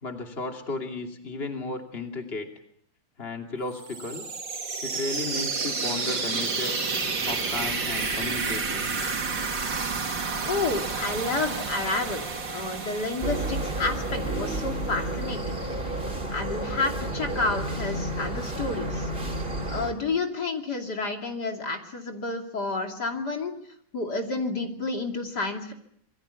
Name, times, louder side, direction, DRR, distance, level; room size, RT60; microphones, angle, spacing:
voice 1, 0.0-2.5 3.2-4.3 4.8-6.7 7.3-8.9, left 3 dB, 30° left, 3 dB, 3.0 m, -34 dB
sound 1, 3.7-15.4, right 4 dB, 65° right, 3.1 m, -31 dB
voice 2, 10.5-15.6 16.3-19.1 19.7-23.5 23.9-25.7, left 3 dB, 55° left, 3 dB, 3.3 m, -30 dB
sound 2, 13.2-19.9, right 1 dB, 30° right, 3.9 m, -31 dB
27.0 x 23.0 x 7.1 m, 0.69 s
omnidirectional pair, 2.1 m